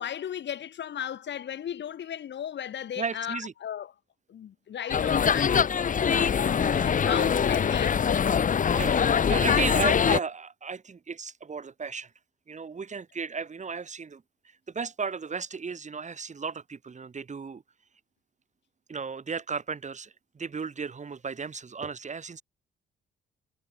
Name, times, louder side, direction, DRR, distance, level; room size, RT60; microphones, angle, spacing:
voice 1, 0.0-3.9 4.3-5.7 6.2-9.6, left 9 dB, 65° left, 6.3 m, -36 dB
voice 2, 3.0-3.5 6.9-7.1 8.7-9.0 9.3-12.1 12.5-14.2 14.7-17.6 18.9-22.4, right 5 dB, 35° right, 7.7 m, -34 dB
sound 1, 4.9-10.2, left 7 dB, 40° left, 1.2 m, -23 dB
cardioid pair, 90°, 20 cm